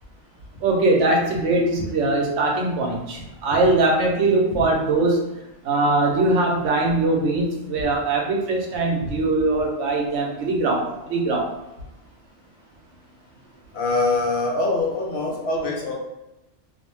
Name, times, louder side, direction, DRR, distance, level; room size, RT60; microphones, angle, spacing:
voice 1, 0.6-5.2 5.6-11.5, right 2 dB, 75° right, 0 dB, 0.9 m, -21 dB
voice 2, 13.7-15.9, left 2 dB, 65° left, -1 dB, 0.8 m, -24 dB
2.5 x 2.1 x 3.0 m, 0.99 s
omnidirectional pair, 1.2 m